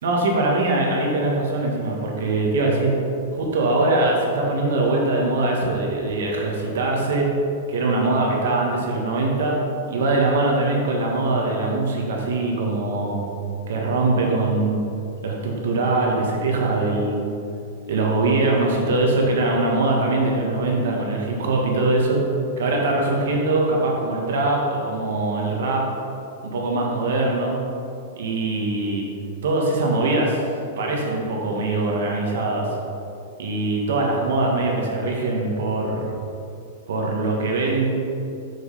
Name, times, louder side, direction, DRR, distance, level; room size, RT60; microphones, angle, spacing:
voice 1, 0.0-2.9 3.3-7.3 7.7-9.6 9.9-13.2 13.7-14.9 15.2-17.3 17.9-22.2 22.6-25.8 26.4-27.6 28.2-29.0 29.4-30.4 30.8-32.7 33.4-36.1 36.9-37.9, right 2 dB, 65° right, -1 dB, 1.5 m, -22 dB
6.3 x 5.1 x 5.5 m, 2.6 s
supercardioid pair, 180°, 0 cm